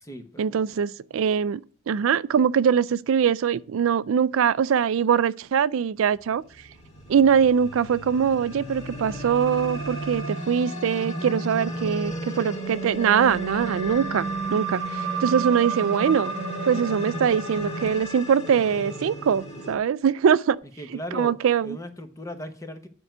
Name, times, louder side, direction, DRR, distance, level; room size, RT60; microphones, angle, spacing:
voice 1, 0.4-6.4 7.1-16.3 16.6-20.6 21.1-21.8, right 7 dB, 75° right, 0.4 m, -22 dB
sound 1, 6.6-19.7, right 2 dB, 30° left, 2.5 m, -32 dB
voice 2, 11.7-12.0 20.8-21.4 21.6-22.9, equal, 15° left, 1.0 m, -37 dB
9.8 x 4.6 x 7.8 m
head